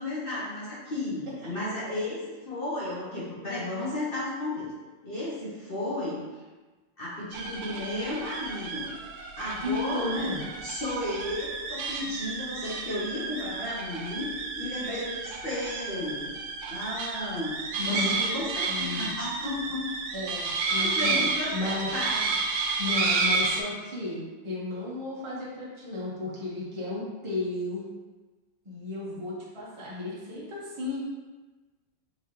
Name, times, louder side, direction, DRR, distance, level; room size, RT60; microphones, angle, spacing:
voice 1, 0.0-4.7 5.0-6.3 7.0-8.9 9.4-16.3 16.7-19.8 20.7-22.4, left 1 dB, 45° left, -8 dB, 0.8 m, -34 dB
sound 1, 7.3-23.6, right 4 dB, 75° right, 1.1 m, -31 dB
voice 2, 9.6-10.4 17.8-18.2 18.7-19.1 20.1-21.2 21.5-21.9 22.5-27.8 28.6-31.0, left 2 dB, 25° right, -6 dB, 0.8 m, -34 dB
4.7 x 3.1 x 3.0 m, 1.3 s
omnidirectional pair, 2.0 m